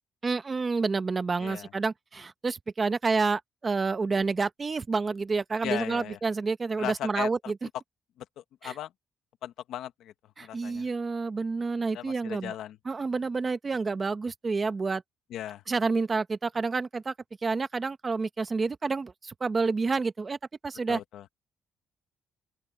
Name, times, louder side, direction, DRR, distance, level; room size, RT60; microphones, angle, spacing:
voice 1, 0.2-7.5 8.6-8.7 10.4-12.5 12.8-15.0 15.7-17.1 17.4-20.4 20.6-21.0, right 4 dB, 30° right, 1.0 m, -29 dB
voice 2, 5.6-6.2 6.8-7.3 8.2-8.9 9.4-10.1 10.4-10.9 11.9-12.8 15.3-15.6 20.9-21.2, left 11 dB, 85° left, 1.4 m, -37 dB
open air
cardioid pair, 120°, 0 cm